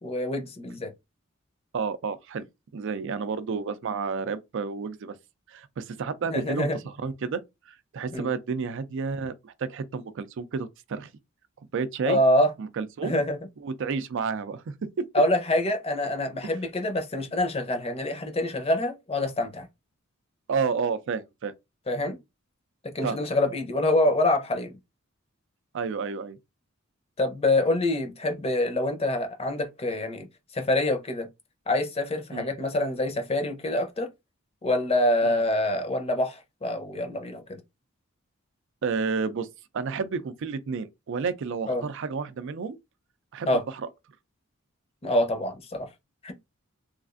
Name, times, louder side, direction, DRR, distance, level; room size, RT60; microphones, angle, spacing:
voice 1, 0.0-0.9 6.3-6.8 8.1-8.3 12.1-12.5 13.0-13.4 15.1-19.7 21.9-22.2 22.9-24.8 27.2-30.3 30.5-31.3 31.7-34.1 34.6-37.6 41.7-41.8 43.5-43.6 45.0-45.9 46.2-46.3, left 1 dB, 30° left, 0.6 m, -26 dB
voice 2, 1.7-2.5 2.7-5.2 5.5-11.1 11.6-12.2 12.6-13.2 13.6-14.6 15.0-15.1 20.5-21.5 23.0-23.2 25.7-26.4 32.3-32.5 35.2-35.4 38.8-39.5 39.7-42.8 43.3-43.9, right 5 dB, 65° right, 0.4 m, -31 dB
3.1 x 2.4 x 2.4 m
head